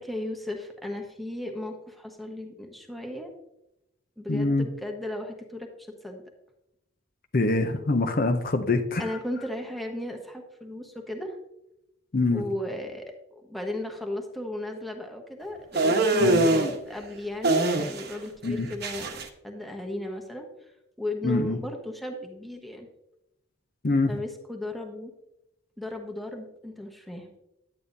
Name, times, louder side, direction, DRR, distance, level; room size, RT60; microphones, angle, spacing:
voice 1, 0.0-3.3 4.2-5.7 6.0-6.2 9.0-11.4 12.3-13.1 13.5-20.5 21.0-22.9 24.1-25.1 25.8-27.3, left 1 dB, ahead, 2 dB, 1.2 m, -35 dB
voice 2, 4.3-4.7 7.3-9.1 12.1-12.4 16.2-16.5 18.4-18.7 21.2-21.6 23.8-24.2, left 2 dB, 45° left, 6 dB, 0.6 m, -24 dB
sound 1, 15.7-16.7 17.4-18.2 18.4-19.2, right 2 dB, 50° right, 1.1 m, -23 dB
10.5 x 9.2 x 2.7 m, 0.86 s
head